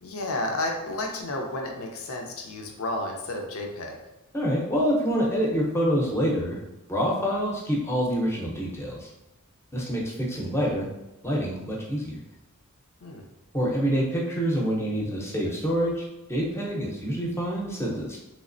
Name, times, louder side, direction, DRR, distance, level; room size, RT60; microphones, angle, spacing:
voice 1, 0.0-4.0 13.0-13.2, left 2 dB, 65° left, 2 dB, 0.6 m, -31 dB
voice 2, 4.3-6.6 6.9-9.1 9.7-10.9 11.2-12.2 13.5-18.2, equal, 10° left, -3 dB, 0.7 m, -26 dB
3.4 x 3.1 x 2.5 m, 0.94 s
head